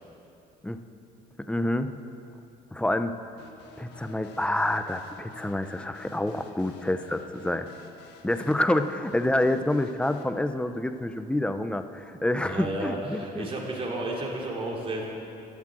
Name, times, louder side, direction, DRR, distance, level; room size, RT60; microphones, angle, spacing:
voice 1, 1.4-1.9 2.7-3.2 3.8-7.7 8.2-13.5, left 1 dB, 5° left, 9 dB, 0.7 m, -27 dB
sound 1, 3.4-10.2, left 4 dB, 85° left, 1.5 m, -51 dB
voice 2, 12.4-15.1, right 1 dB, 35° right, -2 dB, 3.1 m, -32 dB
12.5 x 12.0 x 7.6 m, 2.7 s
cardioid pair, 110°, 17 cm